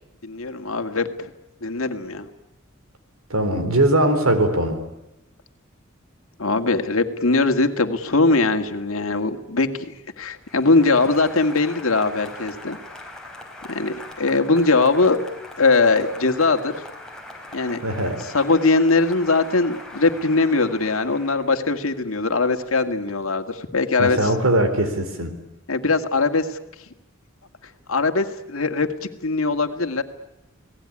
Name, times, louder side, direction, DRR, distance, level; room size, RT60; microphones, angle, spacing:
voice 1, 0.2-1.3 1.6-2.3 6.4-9.9 10.2-12.8 13.7-15.2 15.6-16.7 17.5-17.8 18.3-24.2 25.7-26.6 27.9-30.0, left 3 dB, 80° left, 6 dB, 2.0 m, -21 dB
voice 2, 3.3-4.8 17.8-18.2 24.0-25.3, right 1 dB, 85° right, 9 dB, 3.8 m, -20 dB
Applause, 10.4-21.9, left 2 dB, 5° left, 4.1 m, -41 dB
29.0 x 18.5 x 9.9 m, 0.93 s
head